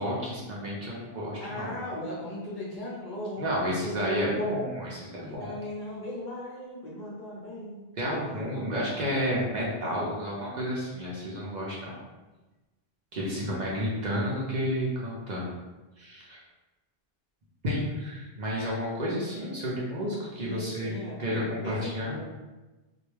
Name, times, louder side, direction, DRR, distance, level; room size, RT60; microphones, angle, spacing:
voice 1, 0.0-1.7 3.4-5.5 8.0-12.0 13.1-15.5 16.0-16.4 17.6-20.9 21.2-22.2, equal, 50° right, -5 dB, 0.6 m, -31 dB
voice 2, 1.4-4.5 5.2-8.7 20.3-22.3, left 1 dB, 55° left, -5 dB, 0.7 m, -38 dB
2.3 x 2.2 x 3.1 m, 1.1 s
omnidirectional pair, 1.0 m